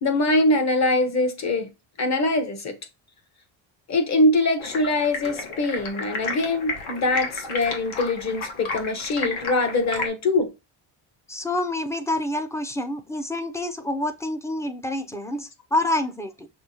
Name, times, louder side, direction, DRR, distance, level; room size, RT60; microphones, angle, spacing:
voice 1, 0.0-1.7 2.0-2.7 3.9-10.5, left 2 dB, 35° left, 1.0 m, -23 dB
Stream, 4.6-10.1, left 4 dB, 75° left, 1.5 m, -32 dB
voice 2, 11.3-16.5, left 1 dB, 5° left, 0.3 m, -27 dB
6.0 x 2.7 x 2.8 m
cardioid pair, 130°, 47 cm